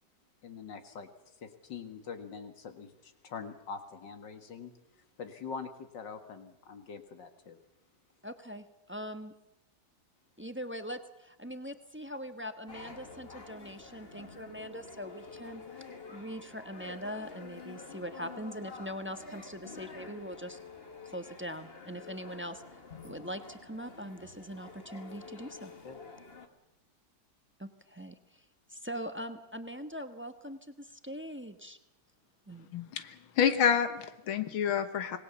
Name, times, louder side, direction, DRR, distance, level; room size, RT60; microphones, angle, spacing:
voice 1, 0.4-7.6 25.8-26.0, left 5 dB, 65° left, 8 dB, 2.5 m, -44 dB
voice 2, 8.2-9.3 10.4-15.6 16.1-20.6 21.0-22.6 23.0-25.7 27.6-28.4 28.7-31.8 32.5-32.7, equal, 10° right, 8 dB, 0.9 m, -42 dB
sound 1, 12.7-26.5, left 4 dB, 30° left, 1.8 m, -49 dB
voice 3, 32.7-35.2, left 8 dB, 90° left, 10 dB, 2.0 m, -28 dB
26.5 x 20.0 x 7.1 m, 0.86 s
omnidirectional pair, 2.2 m